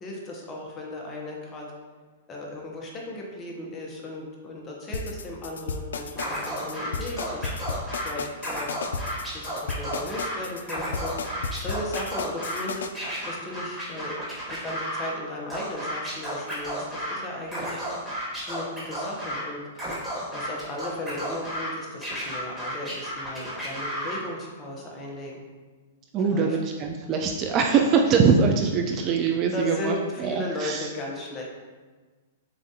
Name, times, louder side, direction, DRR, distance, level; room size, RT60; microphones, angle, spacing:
voice 1, 0.0-1.7 2.3-7.5 8.0-8.8 9.3-12.9 13.2-14.2 14.5-17.8 18.5-19.6 20.3-25.4 26.2-26.6 29.5-31.4, left 1 dB, 20° left, -2 dB, 0.8 m, -36 dB
sound 1, 4.9-12.9, left 5 dB, 90° left, 0.3 m, -33 dB
Scratching (performance technique), 6.2-8.1 8.4-10.4 10.6-12.6 12.9-15.1 15.5-17.2 17.5-19.4 19.7-21.7 22.0-24.2, equal, 5° right, 1.5 m, -33 dB
voice 2, 26.1-30.9, right 5 dB, 30° right, 2 dB, 0.3 m, -23 dB
6.9 x 2.5 x 2.8 m, 1.4 s
hypercardioid pair, 155°, 0 cm